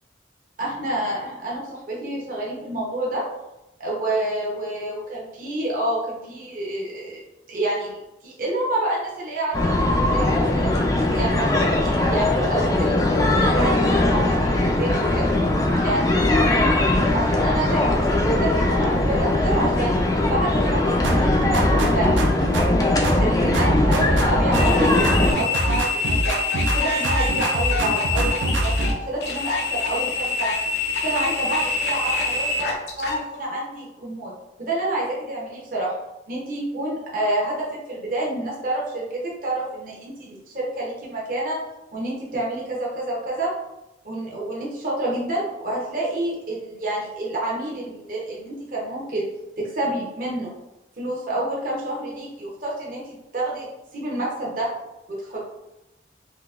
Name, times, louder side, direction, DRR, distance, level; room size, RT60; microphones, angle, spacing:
voice 1, 0.6-3.2 3.8-7.2 7.5-13.0 13.3-15.3 15.8-16.3 17.1-19.9 20.3-22.1 22.6-26.4 26.7-28.7 29.1-30.6 31.0-34.3 34.6-35.9 36.3-41.6 41.9-43.5 44.0-49.3 49.6-50.5 51.0-53.7 53.9-54.7 55.2-55.4, right 1 dB, 45° right, -4 dB, 0.7 m, -28 dB
sound 1, 9.5-25.3, left 1 dB, 20° left, 0.3 m, -20 dB
sound 2, 21.0-22.8 23.0-24.8 25.0-26.8 27.0-28.9, right 1 dB, 85° right, 0.5 m, -24 dB
sound 3, 24.5-33.2, left 3 dB, 60° left, 0.7 m, -26 dB
3.8 x 2.8 x 2.4 m, 0.94 s
head